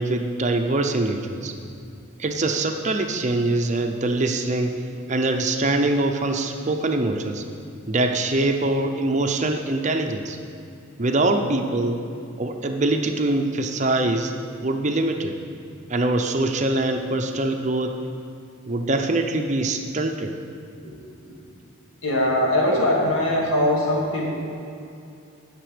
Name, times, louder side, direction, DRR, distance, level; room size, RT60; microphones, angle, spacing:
voice 1, 0.0-1.5 2.2-7.4 7.9-10.4 11.0-12.0 12.4-14.3 14.6-15.3 15.9-17.9 18.7-20.3, right 2 dB, 35° right, 4 dB, 0.6 m, -23 dB
voice 2, 22.0-24.4, left 1 dB, 75° left, -4 dB, 2.8 m, -21 dB
17.0 x 6.7 x 5.0 m, 2.6 s
head